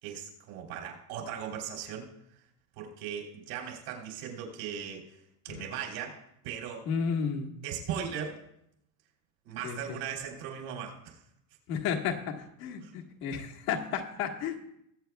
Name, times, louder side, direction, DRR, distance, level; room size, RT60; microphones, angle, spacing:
voice 1, 0.0-2.1 2.8-5.0 5.4-6.2 6.4-6.8 7.6-8.4 9.4-11.2 12.8-12.9, right 8 dB, 85° right, 0 dB, 3.4 m, -38 dB
voice 2, 6.8-7.5 9.6-10.0 11.7-14.6, left 7 dB, 75° left, 1 dB, 1.7 m, -33 dB
21.5 x 8.0 x 2.3 m, 0.76 s
supercardioid pair, 115°, 43 cm